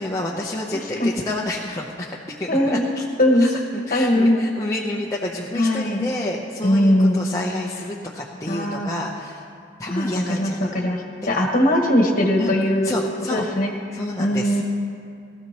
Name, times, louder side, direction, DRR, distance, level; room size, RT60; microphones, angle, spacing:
voice 1, 0.0-3.0 3.4-9.5 9.8-10.7 12.4-12.5 12.8-13.4 13.9-14.6, left 1 dB, 15° left, -3 dB, 0.8 m, -29 dB
voice 2, 2.5-2.9 3.2-3.5 3.9-4.5 5.5-6.1 6.6-7.3 8.5-8.9 9.9-13.0 13.3-13.7 14.2-14.6, left 1 dB, 50° left, 0 dB, 1.5 m, -20 dB
19.5 x 13.5 x 3.0 m, 2.4 s
head